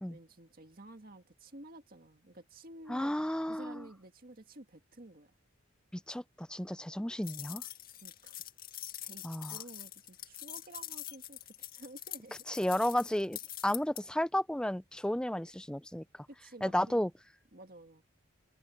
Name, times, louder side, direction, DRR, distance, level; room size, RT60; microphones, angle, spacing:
voice 1, 0.1-3.2 3.5-5.3 8.0-8.4 9.0-12.4 16.4-17.1 17.5-18.0, right 2 dB, 45° right, 2.0 m, -52 dB
voice 2, 2.9-3.9 5.9-7.6 9.2-9.6 12.5-16.0 16.6-17.1, left 1 dB, 5° left, 0.5 m, -33 dB
sound 1, 7.2-14.0, left 12 dB, 45° left, 2.1 m, -44 dB
head